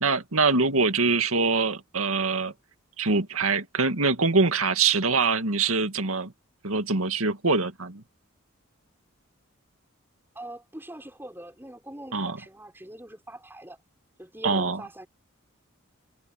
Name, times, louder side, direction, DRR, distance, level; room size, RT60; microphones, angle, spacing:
voice 1, 0.0-2.5 3.0-6.3 6.6-8.0 12.1-12.4 14.4-14.8, right 4 dB, 80° right, 2.2 m, -24 dB
voice 2, 10.3-13.8 14.2-15.1, right 1 dB, 10° right, 6.5 m, -42 dB
head